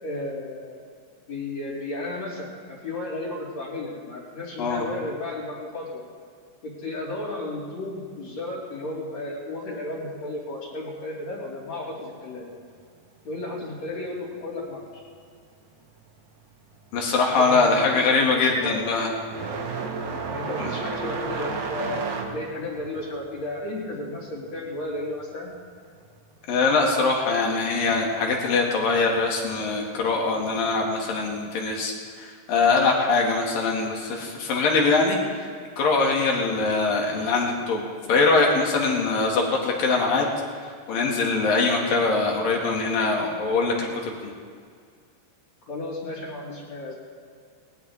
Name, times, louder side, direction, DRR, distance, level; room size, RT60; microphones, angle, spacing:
voice 1, 0.0-0.8 1.3-6.0 6.6-12.5 13.2-15.0 17.2-18.8 20.3-25.5 45.7-47.0, left 2 dB, 50° left, -8 dB, 3.8 m, -33 dB
sound 1, 16.7-17.0 17.4-25.7 26.0-27.0 28.0-28.1 28.9-29.0 30.7-30.9, right 4 dB, 90° right, 1.0 m, -33 dB
voice 2, 16.9-19.1 20.6-20.7 26.5-31.9 32.2-35.5 35.8-40.3 40.9-44.1, left 3 dB, 80° left, 0 dB, 3.8 m, -22 dB
20.0 x 19.0 x 3.6 m, 2.1 s
omnidirectional pair, 4.0 m